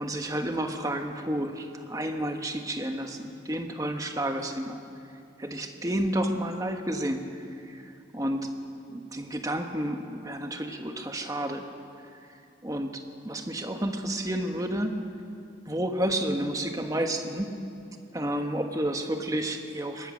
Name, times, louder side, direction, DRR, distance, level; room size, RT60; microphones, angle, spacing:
voice 1, 0.0-4.8 5.4-8.5 8.9-11.6 12.6-14.9 15.7-17.5 18.1-20.1, right 1 dB, 20° right, 4 dB, 1.3 m, -31 dB
23.5 x 19.0 x 6.4 m, 2.6 s
head